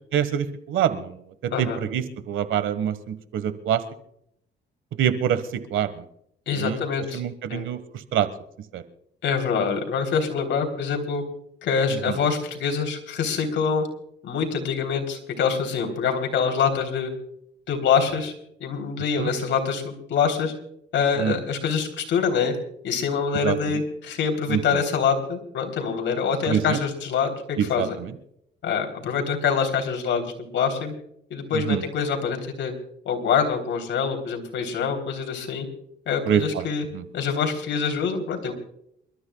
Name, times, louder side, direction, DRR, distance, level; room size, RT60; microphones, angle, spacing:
voice 1, 0.1-1.2 1.6-3.8 5.0-6.0 6.6-6.8 7.1-7.8 8.1-8.3 8.7-8.8 12.1-12.2 19.2-19.3 21.2-21.3 23.4-23.8 24.5-24.6 26.4-26.8 27.6-28.1 31.5-31.8 36.3-36.7 36.9-37.0, right 9 dB, 80° right, 13 dB, 1.5 m, -25 dB
voice 2, 6.5-7.2 7.5-7.6 9.2-11.2 11.6-13.9 14.2-17.1 17.7-18.3 18.6-20.5 20.9-22.5 22.8-28.0 28.6-30.2 30.5-30.9 31.3-32.7 33.0-35.7 36.0-36.8 37.1-38.5, left 6 dB, 70° left, 3 dB, 3.4 m, -25 dB
28.5 x 13.5 x 2.3 m, 0.71 s
cardioid pair, 90°, 20 cm